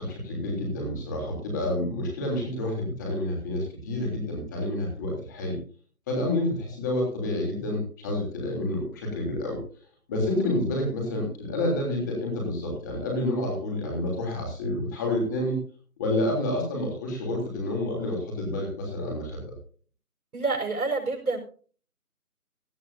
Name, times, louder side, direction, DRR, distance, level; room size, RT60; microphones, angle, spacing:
voice 1, 0.0-5.6 6.1-9.6 10.1-15.6 16.0-19.4, left 1 dB, 10° left, 0 dB, 3.3 m, -29 dB
voice 2, 20.3-21.4, right 3 dB, 75° right, -1 dB, 6.2 m, -27 dB
17.5 x 13.0 x 2.7 m, 0.42 s
hypercardioid pair, 175°, 45 cm